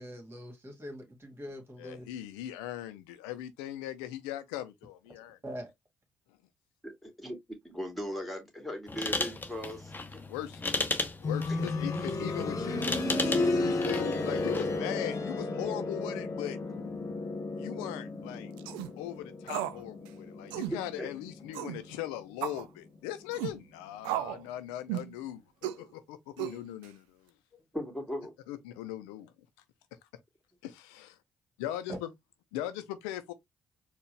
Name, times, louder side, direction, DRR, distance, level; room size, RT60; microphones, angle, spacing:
voice 1, 0.0-2.1 5.4-5.7 31.9-32.0, equal, 30° right, 1.9 m, -42 dB
voice 2, 1.8-5.4 10.2-10.6 11.2-12.9 13.6-16.6 17.6-18.5 19.0-27.3 28.5-29.3 30.6-31.1 31.6-32.1 32.5-33.3, left 13 dB, 80° left, 0.5 m, -39 dB
voice 3, 6.8-7.4 7.6-10.2 11.5-11.6 21.0-21.1 27.7-28.3, equal, ahead, 2.2 m, -38 dB
sound 1, 8.9-14.8, left 3 dB, 25° left, 0.8 m, -36 dB
sound 2, 11.2-22.0 22.3-22.4 23.3-23.4, left 2 dB, 45° left, 1.1 m, -33 dB
sound 3, 18.6-18.9 19.5-19.8 20.1-20.2 20.5-20.8 21.5-21.8 22.4-22.6 23.3-23.6 24.0-24.4 24.9-25.1 25.6-25.8 26.4-26.9, right 13 dB, 80° right, 0.4 m, -34 dB
4.4 x 2.4 x 3.2 m
hypercardioid pair, 45°, 8 cm